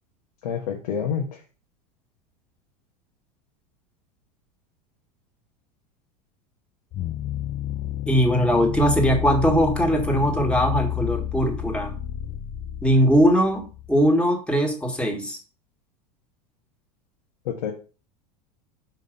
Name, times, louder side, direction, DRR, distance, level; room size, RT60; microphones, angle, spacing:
voice 1, 0.4-1.4 17.4-17.7, left 7 dB, 75° left, 1 dB, 1.4 m, -28 dB
sound 1, 6.9-14.1, left 11 dB, 35° left, 0.4 m, -30 dB
voice 2, 8.1-11.9 12.8-15.4, equal, 5° left, 2 dB, 1.8 m, -20 dB
5.3 x 4.9 x 5.2 m, 0.35 s
hypercardioid pair, 100°, 21 cm